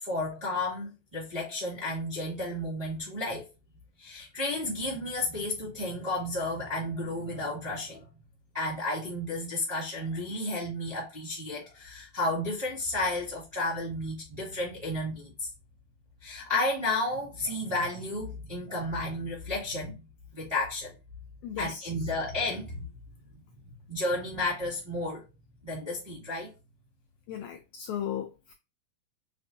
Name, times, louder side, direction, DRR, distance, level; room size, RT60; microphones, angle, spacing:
voice 1, 0.0-3.5 4.0-8.0 8.5-15.5 16.2-20.0 20.3-20.9 21.6-22.9 23.9-25.2 25.6-26.5, left 2 dB, 20° right, 1.0 m, -32 dB
voice 2, 21.4-21.9 27.3-28.5, left 10 dB, 85° left, 1.7 m, -36 dB
6.4 x 2.5 x 2.6 m
omnidirectional pair, 4.0 m